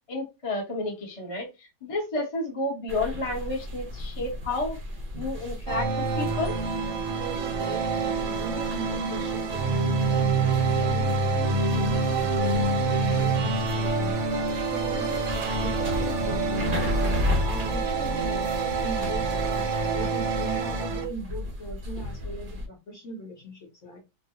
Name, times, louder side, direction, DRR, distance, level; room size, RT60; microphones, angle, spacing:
voice 1, 0.1-4.8 5.1-6.6, left 2 dB, 25° left, 1.0 m, -31 dB
sound 1, 2.9-22.7, left 1 dB, 40° right, 0.8 m, -34 dB
sound 2, 5.7-21.0, right 4 dB, 85° right, 1.5 m, -27 dB
voice 2, 7.1-14.2 14.7-15.2 15.6-24.0, right 2 dB, 55° left, 1.1 m, -39 dB
3.7 x 2.3 x 2.6 m
omnidirectional pair, 1.8 m